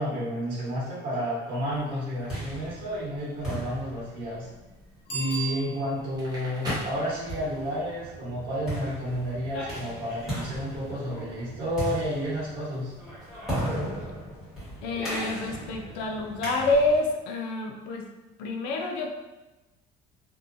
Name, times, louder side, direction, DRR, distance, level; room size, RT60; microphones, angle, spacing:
voice 1, 0.0-4.5 5.1-12.9, equal, 60° right, -10 dB, 1.1 m, -31 dB
sound 1, 1.9-17.1, right 1 dB, ahead, 1.2 m, -37 dB
Bicycle bell, 5.0-6.2 11.7-11.8, right 4 dB, 50° left, 1.1 m, -35 dB
Crackle, 6.1-7.7, equal, 20° right, 0.6 m, -37 dB
voice 2, 14.8-18.0 18.4-19.1, left 2 dB, 90° left, 2 dB, 0.4 m, -27 dB
2.7 x 2.2 x 2.5 m, 1.1 s
cardioid pair, 175°, 19 cm